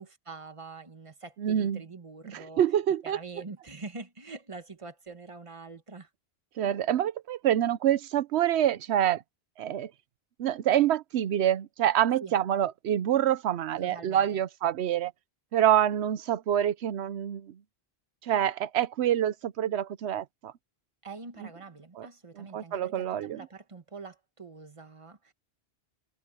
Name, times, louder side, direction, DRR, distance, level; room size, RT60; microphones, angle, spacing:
voice 1, 0.0-2.6 3.0-6.1 12.2-12.4 13.8-14.4 21.0-25.3, right 4 dB, 30° right, 1.5 m, -44 dB
voice 2, 1.4-1.8 2.3-3.2 6.6-9.2 9.6-9.9 10.4-15.1 15.5-17.5 18.2-20.5 22.0-22.1 22.4-23.4, right 10 dB, 90° right, 0.9 m, -26 dB
omnidirectional pair, 1.1 m